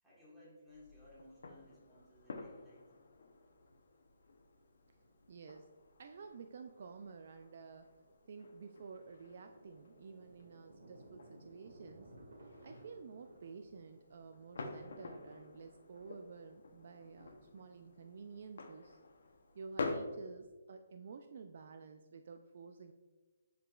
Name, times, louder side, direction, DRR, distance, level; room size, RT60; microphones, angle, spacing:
voice 1, 0.0-2.9, left 1 dB, 5° right, -9 dB, 1.7 m, -60 dB
sound 1, 0.7-20.0, left 3 dB, 70° left, 0.8 m, -50 dB
Thunder, 2.9-3.5 3.8-3.9 4.3-4.6 5.0-17.4, right 1 dB, 80° right, 1.9 m, -61 dB
voice 2, 5.3-5.7 6.0-7.9 8.3-12.1 12.6-19.0 19.5-22.9, right 5 dB, 50° right, 7 dB, 0.4 m, -51 dB
10.0 x 4.9 x 2.4 m, 1.3 s
hypercardioid pair, 170°, 0 cm